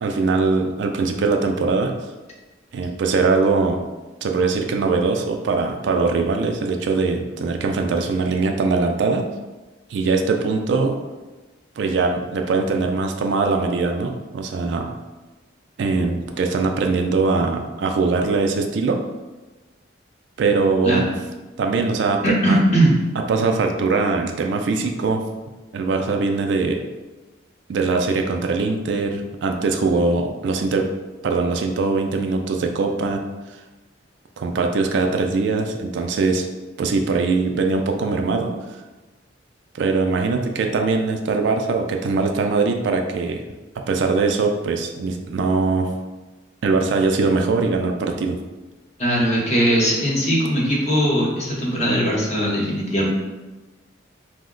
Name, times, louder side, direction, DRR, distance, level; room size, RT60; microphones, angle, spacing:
voice 1, 0.0-1.9 2.7-3.8 4.2-9.3 9.9-11.0 11.8-14.9 15.8-19.0 20.4-21.1 21.6-22.6 23.3-25.2 25.7-26.8 27.7-30.9 31.2-33.3 34.4-36.5 36.8-38.5 39.7-43.4 43.9-45.9 46.6-48.4, right 4 dB, 65° right, 4 dB, 0.3 m, -21 dB
voice 2, 22.2-22.9 49.0-53.1, equal, 35° left, -4 dB, 0.8 m, -19 dB
2.8 x 2.1 x 3.7 m, 1.2 s
head